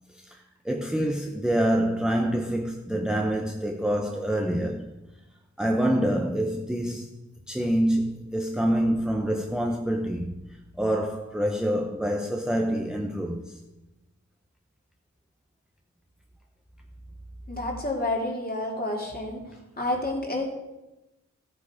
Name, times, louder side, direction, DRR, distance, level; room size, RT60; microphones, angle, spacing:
voice 1, 0.1-4.9 5.6-7.2 7.5-13.6, equal, ahead, 0.9 m, -26 dB
voice 2, 17.5-19.4 19.8-20.5, left 2 dB, 30° left, 2.9 m, -29 dB
14.5 x 8.7 x 5.0 m
wide cardioid pair, 100°, 31 cm